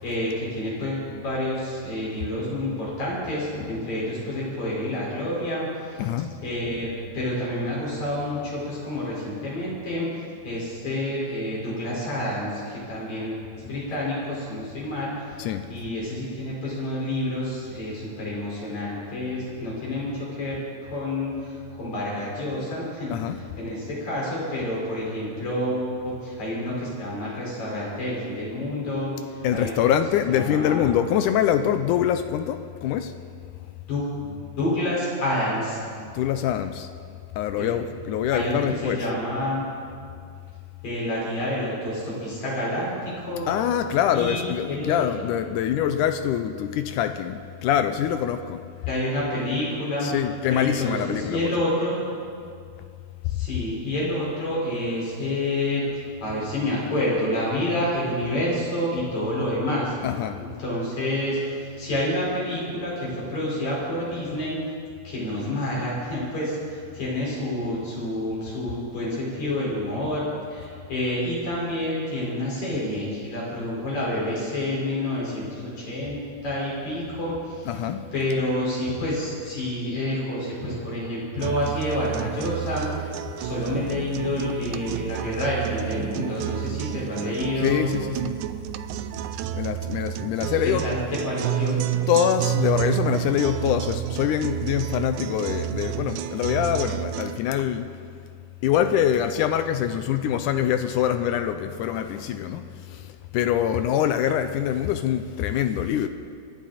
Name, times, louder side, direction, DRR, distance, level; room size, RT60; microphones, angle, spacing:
voice 1, 0.0-5.7 5.9-6.0 6.4-6.9 7.1-15.2 15.7-20.6 20.8-29.7 30.3-30.8 33.9-35.8 37.6-37.7 38.3-38.5 38.8-39.6 40.8-43.5 44.1-44.9 48.9-50.1 50.5-52.0 53.3-55.8 56.2-59.9 60.6-61.4 61.8-64.6 65.0-70.2 70.5-76.2 76.4-77.7 78.1-83.1 83.4-87.9 90.8-91.0 91.3-91.8, left 1 dB, 55° left, -6 dB, 6.2 m, -28 dB
voice 2, 6.0-6.3 15.4-15.7 23.1-23.4 29.4-33.2 36.1-36.9 37.4-39.0 43.5-48.6 50.0-51.5 60.0-60.4 77.7-78.1 87.6-88.4 89.5-90.9 92.1-97.9 98.6-106.1, left 10 dB, 80° left, 9 dB, 2.0 m, -24 dB
sound 1, 81.4-97.4, right 15 dB, 80° right, 1.8 m, -30 dB
28.0 x 10.5 x 4.2 m, 2.3 s
omnidirectional pair, 3.8 m